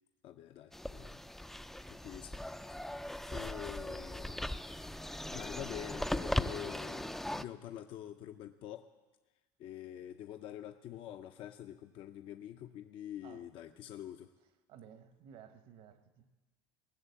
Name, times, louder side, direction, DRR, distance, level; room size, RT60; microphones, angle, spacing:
voice 1, 0.2-1.2 1.9-2.4 2.7-2.8 3.3-4.5 5.3-8.9 9.6-14.3, left 11 dB, 55° left, 0.6 m, -46 dB
sound 1, 0.7-7.4, left 1 dB, 5° left, 0.4 m, -39 dB
voice 2, 13.2-13.8 14.4-16.3, right 8 dB, 65° right, 1.2 m, -57 dB
18.5 x 6.6 x 8.2 m
supercardioid pair, 105°, 11 cm